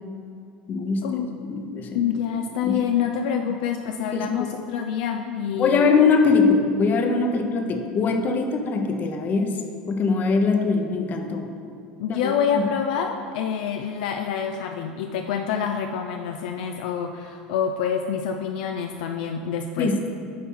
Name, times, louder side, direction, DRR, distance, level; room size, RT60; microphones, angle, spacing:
voice 1, 0.7-2.0 2.6-2.7 4.1-4.5 5.5-9.6 9.9-11.5 12.1-12.3 19.8-20.1, left 4 dB, 40° left, 4 dB, 0.8 m, -22 dB
voice 2, 1.9-5.9 12.0-19.9, left 7 dB, 70° left, 4 dB, 0.3 m, -27 dB
8.5 x 4.0 x 3.7 m, 2.3 s
hypercardioid pair, 80°, 4 cm